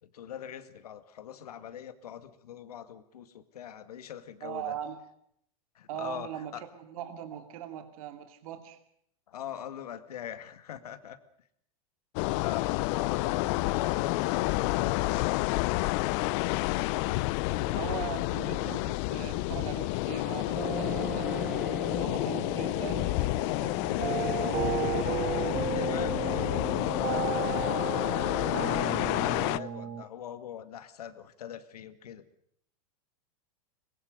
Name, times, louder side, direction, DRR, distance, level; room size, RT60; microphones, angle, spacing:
voice 1, 0.0-4.8 5.8-6.6 9.3-11.2 12.3-15.5 25.7-32.3, left 9 dB, 85° left, 11 dB, 2.2 m, -43 dB
voice 2, 4.4-5.0 5.9-8.8 17.5-21.6 21.9-24.6, right 10 dB, 70° right, 8 dB, 2.7 m, -40 dB
sound 1, 12.2-29.6, left 21 dB, 50° left, 0.8 m, -29 dB
sound 2, 20.4-22.0 23.6-25.8 27.3-27.7, equal, 5° right, 2.6 m, -51 dB
sound 3, 20.6-30.0, right 9 dB, 25° right, 2.0 m, -35 dB
24.0 x 21.0 x 6.7 m, 0.70 s
hypercardioid pair, 120°, 19 cm